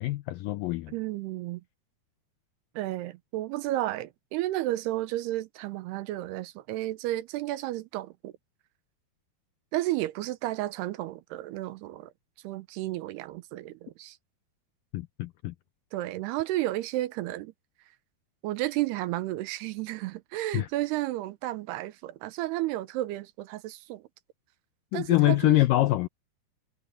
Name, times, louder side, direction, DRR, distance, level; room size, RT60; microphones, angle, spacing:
voice 1, 0.0-0.9 14.9-15.5 20.5-20.7 24.9-26.1, left 17 dB, 85° left, 2.0 m, -24 dB
voice 2, 0.9-1.6 2.8-8.3 9.7-12.1 12.4-14.2 15.9-17.5 18.4-24.0 24.9-25.6, right 16 dB, 85° right, 2.9 m, -32 dB
omnidirectional pair, 4.6 m